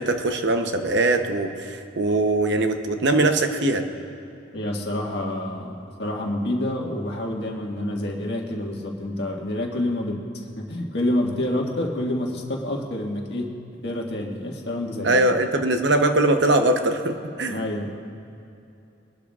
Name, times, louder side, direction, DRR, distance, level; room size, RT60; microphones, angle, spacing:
voice 1, 0.0-3.9 15.0-17.6, right 2 dB, 60° right, 6 dB, 0.8 m, -21 dB
voice 2, 4.5-13.5 13.8-15.2 17.5-17.9, left 1 dB, 55° left, -1 dB, 1.7 m, -28 dB
23.0 x 12.0 x 2.4 m, 2.7 s
head